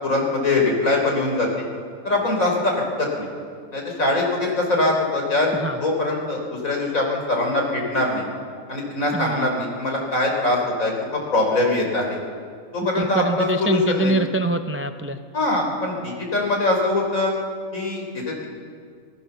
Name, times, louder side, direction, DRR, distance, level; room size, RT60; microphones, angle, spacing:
voice 1, 0.0-1.5 2.0-3.3 3.7-5.5 5.8-8.3 8.7-12.2 12.7-14.1 15.3-17.3 17.7-18.5, left 2 dB, 65° left, 0 dB, 4.4 m, -22 dB
voice 2, 9.1-9.5 12.8-15.2, right 2 dB, 15° right, 8 dB, 0.4 m, -25 dB
26.0 x 18.0 x 7.0 m, 2.2 s
omnidirectional pair, 1.5 m